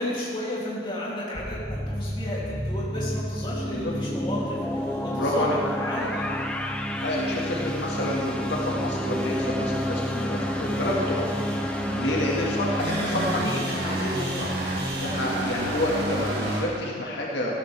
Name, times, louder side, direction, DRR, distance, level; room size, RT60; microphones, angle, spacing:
voice 1, 0.0-6.4 12.3-12.5, left 1 dB, 30° left, -7 dB, 3.1 m, -33 dB
sound 1, 1.4-13.5, equal, 5° left, 0.5 m, -30 dB
sound 2, 4.3-16.6, right 1 dB, 65° right, 2.4 m, -33 dB
voice 2, 5.1-5.6 7.0-11.3 11.9-14.5 15.0-17.5, left 1 dB, 85° left, -3 dB, 2.0 m, -29 dB
sound 3, 8.4-14.2, equal, 15° right, 1.5 m, -36 dB
14.0 x 12.5 x 3.5 m, 2.1 s
head